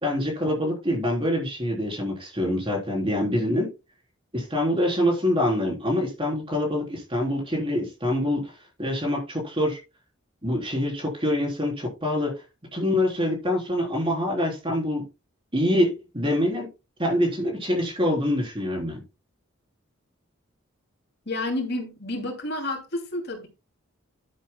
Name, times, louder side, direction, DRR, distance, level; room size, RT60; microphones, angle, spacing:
voice 1, 0.0-3.7 4.3-8.5 8.8-9.8 10.4-12.3 12.7-15.0 15.5-16.7 17.0-19.0, left 1 dB, 25° right, 3.6 m, -25 dB
voice 2, 21.3-23.5, left 1 dB, 50° left, 2.6 m, -30 dB
11.0 x 10.0 x 2.2 m
head